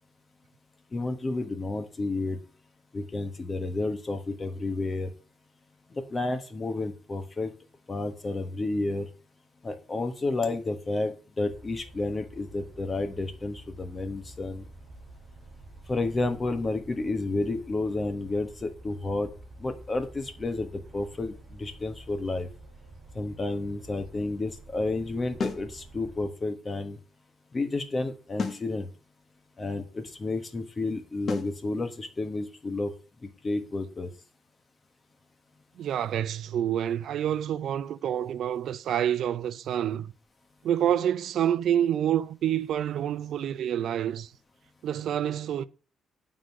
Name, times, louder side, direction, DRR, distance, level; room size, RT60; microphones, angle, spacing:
voice 1, 0.9-2.4 2.9-5.1 6.1-7.5 7.9-9.1 9.6-14.6 15.9-19.3 19.6-22.5 23.1-27.0 27.5-28.9 29.6-32.9 33.4-34.1, left 2 dB, 30° left, 1.4 m, -31 dB
sound 1, 11.5-26.3, right 2 dB, 40° right, 2.3 m, -49 dB
sound 2, 25.4-25.7 28.4-28.7 31.3-31.6, left 5 dB, 50° left, 1.1 m, -31 dB
voice 2, 35.8-40.1 40.6-44.3 44.8-45.6, right 10 dB, 70° right, 0.5 m, -27 dB
9.2 x 3.8 x 6.2 m
cardioid pair, 90°, 0 cm